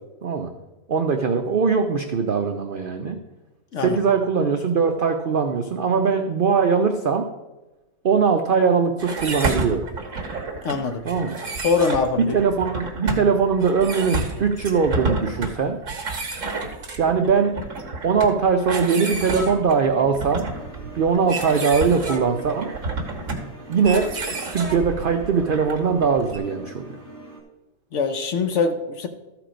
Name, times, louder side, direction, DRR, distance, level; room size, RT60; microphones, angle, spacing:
voice 1, 0.9-3.2 3.8-7.3 8.0-9.9 11.0-11.4 12.3-15.8 17.0-17.5 18.0-20.5 20.9-22.7 23.7-24.1 24.5-27.0, right 5 dB, 75° right, 6 dB, 0.5 m, -21 dB
sound 1, 9.0-26.4, right 3 dB, 55° right, 1.6 m, -30 dB
voice 2, 10.6-11.0 11.6-12.4 27.9-29.1, left 4 dB, 60° left, 8 dB, 0.9 m, -23 dB
sound 2, 20.5-27.4, right 2 dB, 10° left, 1.6 m, -42 dB
13.5 x 4.6 x 5.0 m, 1.1 s
omnidirectional pair, 1.6 m